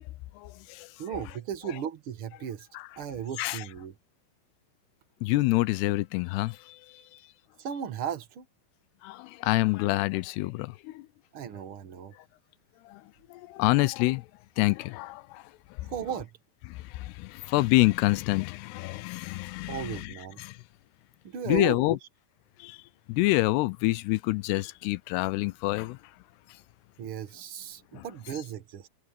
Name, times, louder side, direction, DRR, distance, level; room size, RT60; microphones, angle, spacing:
voice 1, 0.3-0.9 2.7-2.9 3.4-3.6 5.2-7.2 9.0-11.1 12.9-14.3 14.6-15.9 16.7-20.6 21.5-22.0 22.6-22.8 23.1-26.0 27.9-28.1, left 20 dB, 85° left, 2.7 m, -27 dB
voice 2, 1.0-2.7 3.0-3.9 7.6-8.4 11.3-12.1 15.8-16.3 19.7-20.4 21.2-21.8 27.0-28.9, right 8 dB, 80° right, 1.2 m, -35 dB
omnidirectional pair, 4.7 m